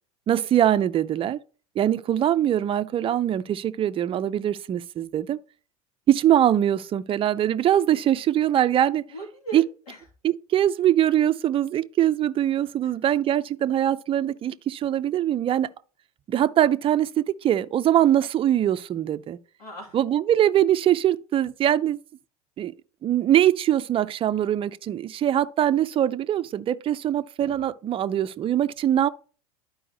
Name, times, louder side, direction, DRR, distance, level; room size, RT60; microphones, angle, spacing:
voice 1, 0.3-1.4 1.8-5.4 6.1-9.0 9.5-9.6 10.2-15.7 16.3-19.4 19.9-22.0 22.6-22.7 23.0-29.1, right 11 dB, 30° right, 0.5 m, -22 dB
voice 2, 9.1-10.0 12.8-12.9 19.6-20.0, right 3 dB, 80° left, 2.8 m, -39 dB
12.0 x 4.8 x 3.0 m
hypercardioid pair, 90°, 20 cm